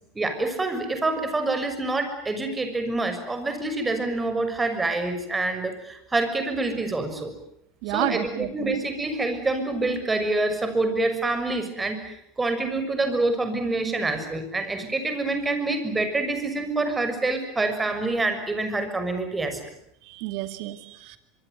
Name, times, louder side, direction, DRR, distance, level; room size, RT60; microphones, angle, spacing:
voice 1, 0.1-7.3 7.9-19.6, right 2 dB, 15° right, 8 dB, 6.5 m, -26 dB
voice 2, 7.8-8.7 20.1-21.2, right 16 dB, 60° right, 10 dB, 2.4 m, -30 dB
24.5 x 24.5 x 9.5 m, 0.76 s
hypercardioid pair, 85°, 0 cm